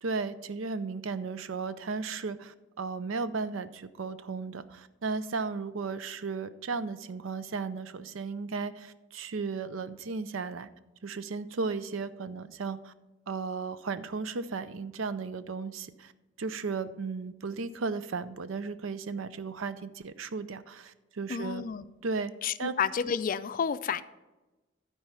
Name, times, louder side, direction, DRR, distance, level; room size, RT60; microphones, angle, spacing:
voice 1, 0.0-10.7 11.0-12.9 13.3-16.1 16.4-21.6 22.0-22.3 22.6-22.8, right 4 dB, 90° right, 14 dB, 0.5 m, -35 dB
voice 2, 21.3-21.8 22.4-24.0, left 7 dB, 45° left, 14 dB, 0.4 m, -30 dB
12.0 x 4.7 x 5.6 m, 1.1 s
head